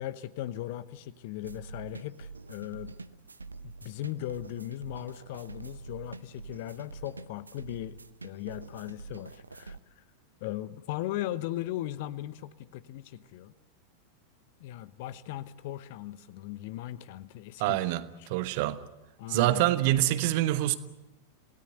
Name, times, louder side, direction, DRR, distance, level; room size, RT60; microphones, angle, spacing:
voice 1, 0.0-2.9 3.6-8.0 8.2-10.0 10.4-13.5 14.6-17.8 18.2-18.3 19.2-19.7, left 14 dB, 50° left, 1.0 m, -38 dB
sound 1, 1.4-9.8, right 4 dB, 80° right, 0.8 m, -46 dB
voice 2, 17.6-18.8 19.3-20.7, right 15 dB, 50° right, 1.1 m, -26 dB
27.0 x 17.5 x 8.1 m
figure-of-eight pair, 90°, 0 cm